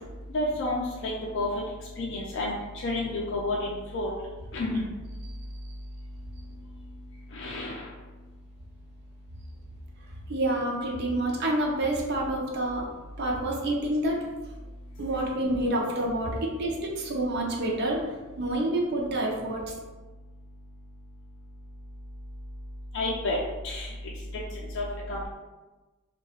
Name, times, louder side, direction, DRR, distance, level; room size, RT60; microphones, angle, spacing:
voice 1, 0.3-1.5 2.0-2.5 2.8-4.1 4.5-4.8 7.3-7.8 22.9-23.4 23.6-23.9 24.7-24.8 25.1-25.3, left 2 dB, 55° left, -3 dB, 0.4 m, -30 dB
voice 2, 10.3-12.8 13.2-14.2 15.0-18.0 18.4-19.6, right 1 dB, 50° right, -2 dB, 0.5 m, -28 dB
2.7 x 2.2 x 2.8 m, 1.2 s
head